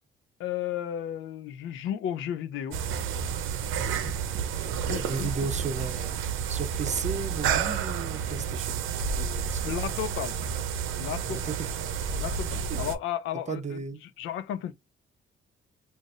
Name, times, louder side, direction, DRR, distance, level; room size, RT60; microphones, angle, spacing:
voice 1, 0.4-2.8 4.8-5.3 9.6-10.3 11.0-11.4 12.2-13.8 14.2-14.7, left 10 dB, 80° left, 0.5 m, -33 dB
sound 1, 2.7-12.9, right 7 dB, 85° right, 0.6 m, -30 dB
voice 2, 3.8-4.1 5.1-6.2 6.5-8.8 9.2-9.6 11.3-11.8 12.7-12.8 13.5-14.0, right 5 dB, 35° right, 0.7 m, -34 dB
3.8 x 2.5 x 2.3 m
cardioid pair, 90°, 20 cm